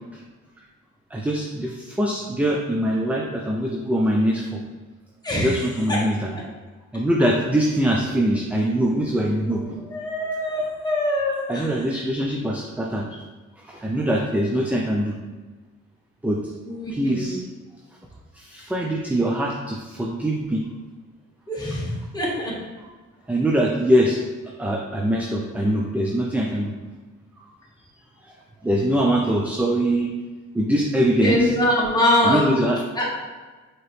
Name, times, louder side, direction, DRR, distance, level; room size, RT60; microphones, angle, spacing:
voice 1, 1.1-4.6 5.4-6.3 6.9-9.9 11.5-13.1 13.6-15.2 16.2-16.5 16.9-17.4 18.3-20.7 23.3-24.2 24.6-26.7 28.2-28.3 28.6-30.1 30.5-31.5 32.2-32.8, right 1 dB, 5° right, -1 dB, 0.4 m, -23 dB
voice 2, 5.2-5.6 6.3-6.4 9.9-11.7 16.7-17.3 21.5-22.5 31.2-32.6 33.0-33.1, left 1 dB, 15° left, -5 dB, 1.4 m, -23 dB
4.7 x 3.0 x 3.1 m, 1.3 s
cardioid pair, 90°, 30 cm